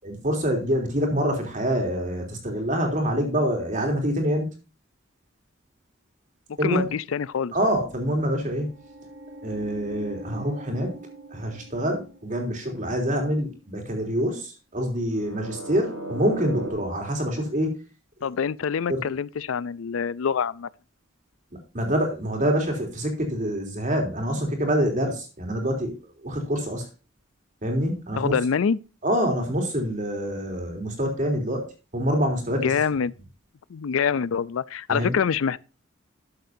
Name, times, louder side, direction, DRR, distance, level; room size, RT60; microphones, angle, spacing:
voice 1, 0.0-4.5 6.6-6.9 7.5-8.7 9.4-11.0 11.3-17.7 18.9-19.0 21.7-26.0 26.2-26.9 27.6-28.3 29.0-31.7 31.9-32.8 34.9-35.2, equal, 40° right, 3.4 m, -26 dB
voice 2, 6.6-7.5 18.2-20.7 28.2-28.8 32.5-33.1 33.7-35.6, left 6 dB, 85° left, 0.4 m, -25 dB
sound 1, 7.8-12.6 15.1-16.7, right 1 dB, 80° right, 5.0 m, -39 dB
13.0 x 7.8 x 2.7 m
head